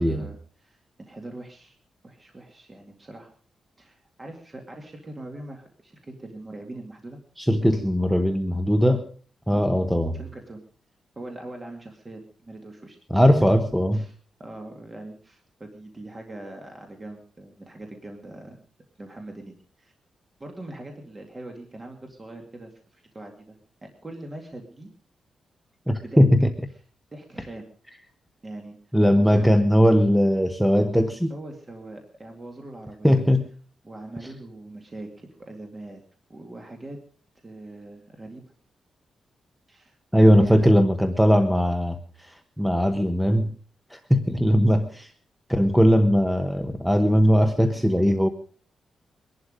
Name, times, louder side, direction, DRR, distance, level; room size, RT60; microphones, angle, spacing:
voice 1, 0.0-1.8 2.0-3.3 3.8-7.2 9.5-9.6 10.1-10.6 11.2-13.0 13.9-14.1 14.4-18.6 19.0-19.9 20.4-24.9 25.9-26.2 27.1-27.7 28.4-28.8 29.1-29.5 31.3-33.2 33.8-36.0 36.3-37.0 37.4-38.4 39.7-40.6, right 2 dB, 20° right, 3 dB, 2.2 m, -42 dB
voice 2, 7.4-9.0 9.5-10.2 13.1-14.1 25.9-26.5 28.9-31.3 33.0-33.5 40.1-43.5 43.9-45.1 45.5-48.3, equal, ahead, 8 dB, 0.9 m, -19 dB
23.0 x 11.5 x 5.1 m, 0.43 s
wide cardioid pair, 170°, 0 cm